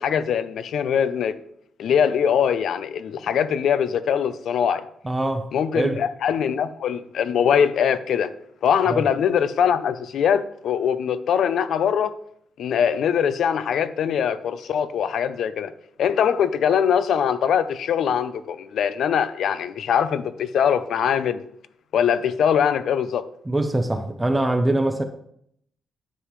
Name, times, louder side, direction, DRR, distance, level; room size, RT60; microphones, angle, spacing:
voice 1, 0.0-1.3 1.8-4.9 5.5-8.3 8.6-12.1 12.6-15.7 16.0-21.4 21.9-23.2, left 8 dB, 70° left, 0.5 m, -22 dB
voice 2, 5.0-5.5 5.7-6.0 8.9-9.0 23.5-25.0, right 1 dB, 10° right, 0.6 m, -23 dB
9.9 x 7.5 x 3.1 m
cardioid pair, 145°, 0 cm